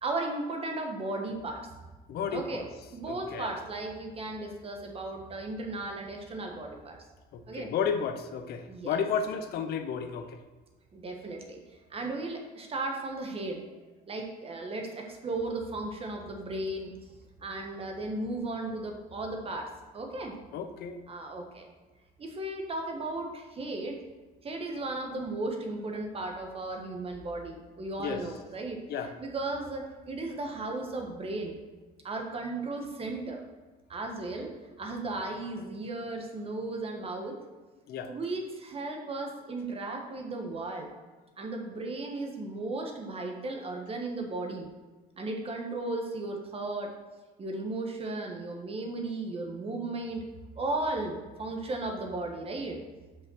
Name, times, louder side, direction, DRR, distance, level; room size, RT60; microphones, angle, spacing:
voice 1, 0.0-1.7 2.3-2.6 2.9-7.0 7.5-7.7 8.7-8.9 10.9-11.6 11.9-13.6 14.1-17.1 17.4-20.4 21.1-21.7 22.2-24.0 24.4-28.8 29.2-31.6 32.0-33.4 33.9-34.5 34.8-37.4 38.1-40.9 41.4-44.7 45.2-46.9 47.4-50.2 50.6-52.8, right 2 dB, 35° right, 2 dB, 1.4 m, -35 dB
voice 2, 2.1-2.6 3.1-3.5 7.3-10.4 20.5-21.0 28.0-28.2 28.9-29.1 37.9-38.1, left 6 dB, 70° left, 8 dB, 0.9 m, -32 dB
5.7 x 5.3 x 6.3 m, 1.2 s
cardioid pair, 110°, 17 cm